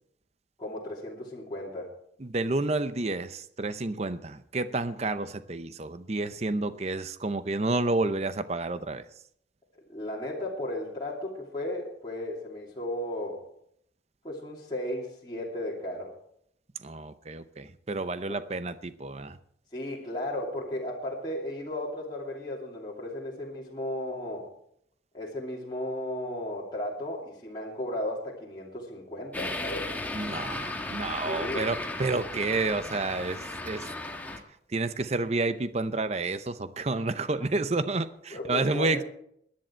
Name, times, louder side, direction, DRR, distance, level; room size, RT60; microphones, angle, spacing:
voice 1, 0.6-1.9 9.9-13.4 14.2-16.1 18.3-18.4 19.7-24.4 25.1-29.9 31.2-31.7 38.3-39.0, left 1 dB, 25° left, -5 dB, 2.7 m, -35 dB
voice 2, 2.2-9.0 16.8-19.4 30.1-33.9 34.7-39.0, right 3 dB, 35° right, 12 dB, 0.7 m, -30 dB
sound 1, 29.3-34.4, left 2 dB, 10° left, 1.4 m, -35 dB
18.5 x 10.5 x 4.5 m, 0.70 s
head